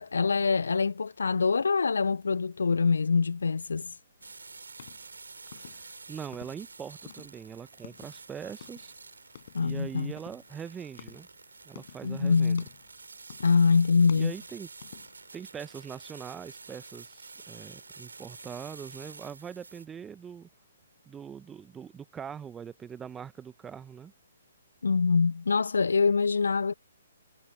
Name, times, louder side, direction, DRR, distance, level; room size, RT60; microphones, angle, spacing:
voice 1, 0.0-3.9 9.5-10.1 12.0-12.6 13.4-14.3 24.8-26.7, left 5 dB, 70° left, 0.4 m, -24 dB
sound 1, 4.2-6.7 7.0-9.0 9.3-9.7 10.2-12.2 12.5-13.0 13.3-13.7 14.0-15.3, left 9 dB, 50° left, 4.5 m, -51 dB
sound 2, 4.2-19.9, right 4 dB, 75° right, 3.7 m, -49 dB
voice 2, 6.1-8.9 9.6-11.3 11.6-12.6 14.1-14.7 15.3-20.5 21.1-24.1, right 7 dB, 10° right, 1.1 m, -42 dB
figure-of-eight pair, 130°, 0 cm